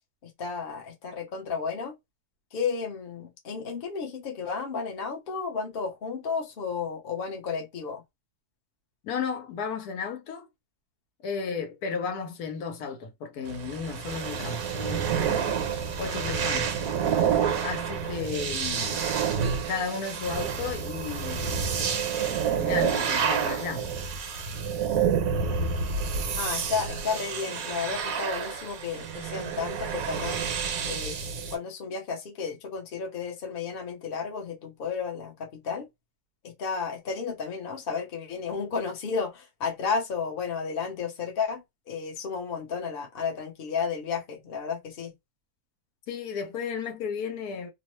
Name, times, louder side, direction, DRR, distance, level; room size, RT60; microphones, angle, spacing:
voice 1, 0.2-1.9 2.5-8.0 26.4-30.4 30.8-31.2 31.5-35.9 36.4-45.1, left 5 dB, 45° left, 0.9 m, -32 dB
voice 2, 9.0-10.5 11.2-15.4 16.0-16.8 17.6-19.1 19.7-21.8 22.6-23.9 46.1-47.7, left 6 dB, 85° left, 1.3 m, -34 dB
sound 1, 13.4-31.6, right 7 dB, 70° right, 1.1 m, -29 dB
2.9 x 2.0 x 3.0 m
omnidirectional pair, 1.6 m